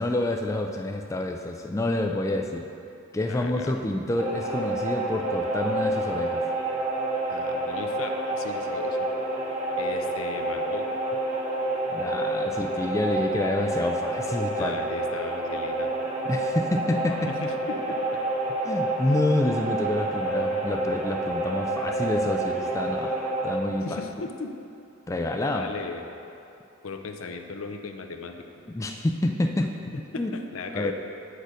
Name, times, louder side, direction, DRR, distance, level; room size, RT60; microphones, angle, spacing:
voice 1, 0.0-2.7 3.1-6.4 6.8-6.9 11.9-14.8 16.3-17.3 18.6-24.0 25.1-25.7 28.7-29.8 30.2-30.3 30.7-30.9, left 1 dB, 15° left, 3 dB, 0.3 m, -28 dB
voice 2, 3.3-3.7 7.3-9.1 9.8-10.9 14.6-15.9 17.3-18.2 23.8-24.5 25.4-26.1 26.8-28.4 29.9-30.9, left 4 dB, 80° left, 5 dB, 0.6 m, -36 dB
sound 1, 4.2-23.6, right 2 dB, 30° right, 1.2 m, -28 dB
7.9 x 6.6 x 5.0 m, 2.7 s
head